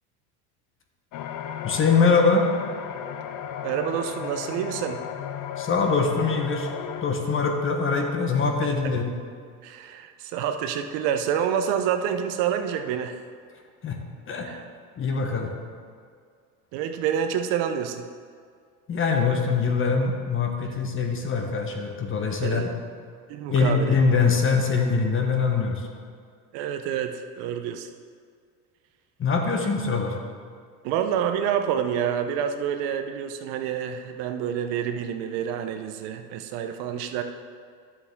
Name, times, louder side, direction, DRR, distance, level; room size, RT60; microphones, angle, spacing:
sound 1, 1.1-7.0, left 9 dB, 45° left, 0.6 m, -35 dB
voice 1, 1.6-2.5 5.6-6.7 7.0-9.1 13.8-14.0 14.3-14.5 15.0-15.5 18.9-22.7 23.5-25.9 29.2-30.2, left 4 dB, 25° left, 3 dB, 1.2 m, -23 dB
voice 2, 3.6-5.0 9.6-13.2 14.4-14.6 16.7-18.1 22.4-22.7 23.3-24.0 26.5-27.9 30.8-37.2, right 8 dB, 60° right, 7 dB, 0.8 m, -28 dB
10.5 x 7.1 x 3.6 m, 2.1 s
supercardioid pair, 110°, 47 cm